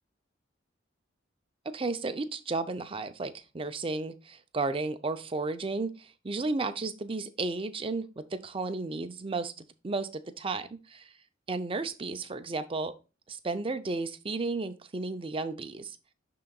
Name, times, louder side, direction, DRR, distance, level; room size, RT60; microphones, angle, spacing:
voice 1, 1.6-11.1 11.5-12.9 13.3-16.0, right 3 dB, 30° right, 9 dB, 0.6 m, -33 dB
11.0 x 3.9 x 2.3 m, 0.30 s
head